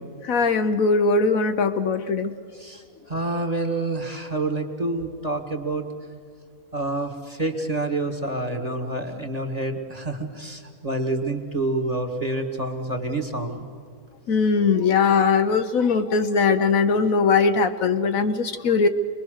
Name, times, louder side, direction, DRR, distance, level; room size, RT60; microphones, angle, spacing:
voice 1, 0.2-2.3 14.3-18.9, left 4 dB, 65° left, 8 dB, 1.2 m, -20 dB
voice 2, 3.1-5.8 6.7-13.7, right 2 dB, 25° right, 3 dB, 1.8 m, -28 dB
25.0 x 21.5 x 6.4 m, 2.2 s
omnidirectional pair, 1.6 m